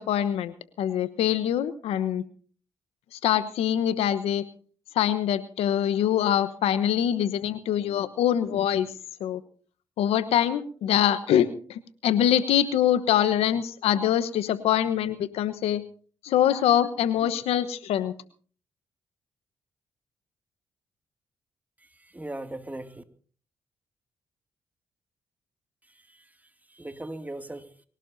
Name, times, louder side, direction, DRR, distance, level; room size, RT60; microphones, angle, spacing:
voice 1, 0.0-2.2 3.1-4.4 4.9-8.9 9.2-9.4 10.0-15.8 16.2-18.1, left 10 dB, 75° left, 14 dB, 1.1 m, -24 dB
voice 2, 21.8-23.0 25.8-27.9, right 1 dB, 15° right, 7 dB, 2.5 m, -40 dB
24.5 x 17.0 x 2.8 m, 0.43 s
hypercardioid pair, 50°, 10 cm